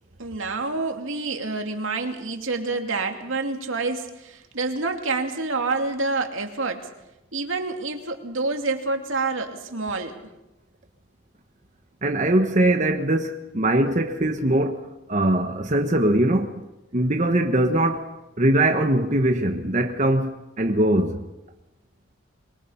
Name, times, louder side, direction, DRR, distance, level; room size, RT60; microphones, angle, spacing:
voice 1, 0.2-6.9 7.3-10.2, right 3 dB, 75° right, 2.6 m, -27 dB
voice 2, 12.0-16.5 16.9-18.1 18.4-21.2, right 1 dB, 35° right, 1.2 m, -21 dB
25.0 x 22.5 x 5.7 m
head